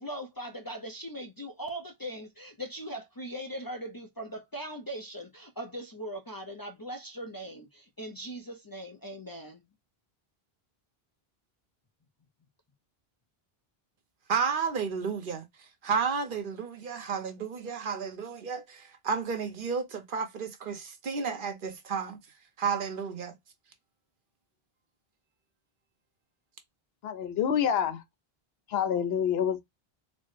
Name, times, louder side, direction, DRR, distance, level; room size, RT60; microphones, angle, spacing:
voice 1, 0.0-9.6, right 1 dB, 30° left, 0.4 m, -40 dB
voice 2, 14.3-15.4 15.8-22.2 22.6-23.3, right 6 dB, 60° right, 0.9 m, -32 dB
voice 3, 27.0-28.0 28.7-29.7, left 8 dB, 80° left, 0.8 m, -27 dB
4.1 x 2.0 x 3.1 m
omnidirectional pair, 1.0 m